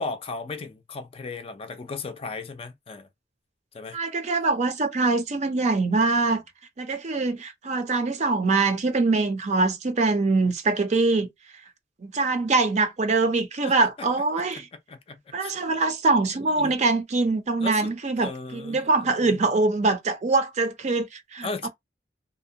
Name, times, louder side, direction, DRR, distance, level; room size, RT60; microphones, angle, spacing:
voice 1, 0.0-3.1 3.7-4.0 5.8-6.1 13.6-14.1 14.5-15.8 16.5-16.7 17.6-17.9 18.2-19.4 21.4-21.7, left 4 dB, 30° left, 0.4 m, -36 dB
voice 2, 3.9-6.4 6.8-11.3 12.0-14.7 15.3-21.7, right 3 dB, 40° right, 0.5 m, -23 dB
2.7 x 2.1 x 2.7 m
head